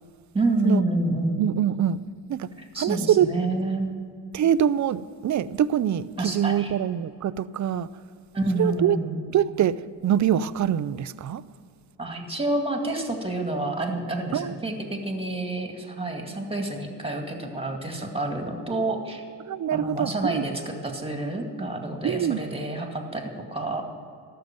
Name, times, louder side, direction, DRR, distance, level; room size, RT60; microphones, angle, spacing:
voice 1, 0.3-1.4 2.6-3.9 6.2-6.7 8.3-9.2 12.0-19.2 19.7-23.8, right 2 dB, 15° right, 3 dB, 2.1 m, -28 dB
voice 2, 1.4-2.0 2.3-2.5 2.8-3.3 4.3-7.9 8.6-9.0 9.3-9.8 10.0-11.4 14.3-14.6 19.5-20.4 22.0-22.4, right 10 dB, 40° right, 17 dB, 0.5 m, -24 dB
13.0 x 6.8 x 9.1 m, 2.2 s
cardioid pair, 85°, 44 cm